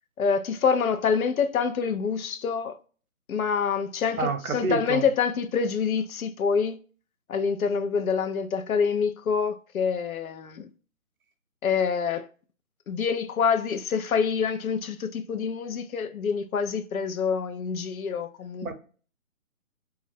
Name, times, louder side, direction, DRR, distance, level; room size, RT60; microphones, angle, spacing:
voice 1, 0.2-2.8 3.3-6.8 7.3-10.6 11.6-12.3 12.9-18.7, left 6 dB, 80° left, 0.5 m, -26 dB
voice 2, 4.2-5.0 18.6-18.7, right 4 dB, 90° right, 0.7 m, -28 dB
2.3 x 2.0 x 2.6 m
figure-of-eight pair, 155°, 41 cm